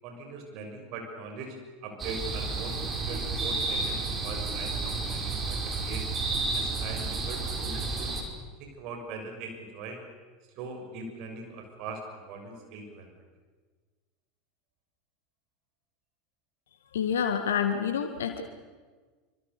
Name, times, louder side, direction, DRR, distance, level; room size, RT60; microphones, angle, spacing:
voice 1, 0.0-2.7 3.0-6.0 6.5-8.2 8.6-10.0 10.5-13.2, right 3 dB, 50° right, 3 dB, 6.3 m, -41 dB
sound 1, 2.0-8.2, right 3 dB, 25° right, 5.3 m, -31 dB
voice 2, 16.9-18.4, left 7 dB, 70° left, 7 dB, 2.0 m, -28 dB
26.5 x 26.0 x 6.9 m, 1.4 s
figure-of-eight pair, 80°, 0 cm